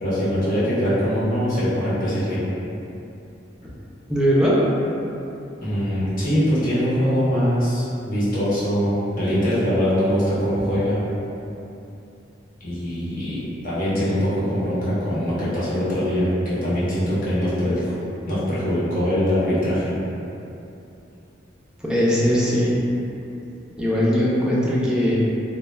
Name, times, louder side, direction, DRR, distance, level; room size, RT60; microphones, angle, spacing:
voice 1, 0.0-2.4 5.6-11.0 12.6-17.9 18.3-19.9, equal, 50° left, -10 dB, 0.9 m, -22 dB
voice 2, 4.1-4.6 21.8-22.8 23.8-25.2, equal, 5° right, -7 dB, 0.4 m, -20 dB
2.3 x 2.1 x 3.1 m, 2.7 s
head